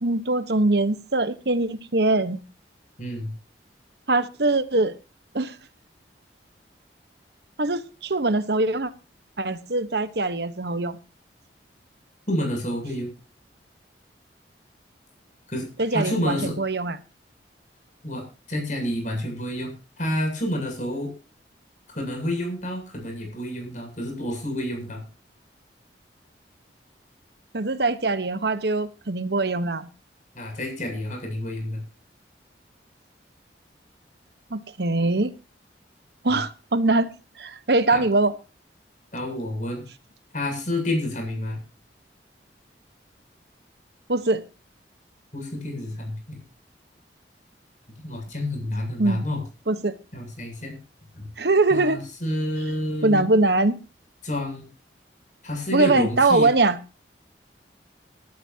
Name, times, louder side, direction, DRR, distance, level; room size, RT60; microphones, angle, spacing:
voice 1, 0.0-2.4 4.1-5.0 5.3-5.6 7.6-8.9 9.4-11.0 15.8-17.0 27.5-29.9 34.5-35.3 36.2-37.1 37.4-38.3 44.1-44.4 49.0-49.2 49.7-49.9 51.4-52.0 53.0-53.8 55.7-56.8, right 2 dB, 65° right, 12 dB, 1.2 m, -22 dB
voice 2, 3.0-3.3 12.3-13.1 15.5-16.6 18.0-21.1 21.9-25.0 30.3-31.8 36.3-36.4 37.9-38.0 39.1-39.8 40.3-41.6 45.3-46.4 48.0-49.4 50.1-50.8 51.1-51.3 51.7-53.3 54.2-54.7 55.4-56.5, left 1 dB, 45° left, 3 dB, 7.7 m, -29 dB
20.0 x 13.0 x 2.9 m, 0.32 s
head